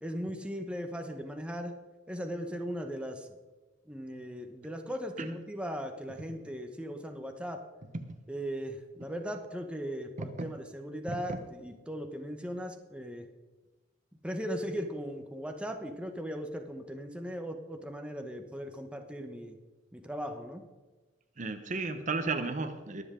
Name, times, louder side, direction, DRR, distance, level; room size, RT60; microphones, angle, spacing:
voice 1, 0.0-1.7 2.1-3.3 3.9-7.6 8.3-13.3 14.2-19.6 19.9-20.6, equal, 5° right, 4 dB, 1.0 m, -38 dB
voice 2, 11.1-11.4 21.4-23.0, right 3 dB, 45° right, 8 dB, 0.9 m, -34 dB
22.0 x 8.0 x 3.7 m, 1.2 s
head